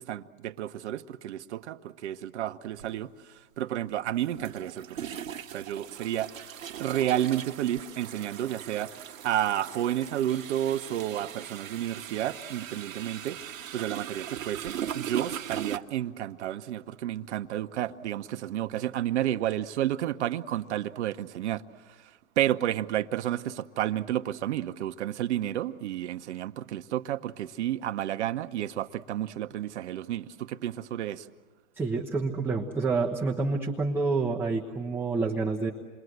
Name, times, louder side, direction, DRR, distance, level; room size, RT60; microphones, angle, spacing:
voice 1, 0.0-5.2 5.5-6.3 6.8-13.4 13.7-21.6 22.4-31.3, right 12 dB, 55° right, 10 dB, 1.0 m, -31 dB
sound 1, 2.8-2.9 4.2-15.8, right 10 dB, 75° right, 1.3 m, -39 dB
voice 2, 31.8-35.7, right 3 dB, 5° right, -2 dB, 1.0 m, -28 dB
28.5 x 22.5 x 8.0 m, 1.4 s
hypercardioid pair, 125°, 41 cm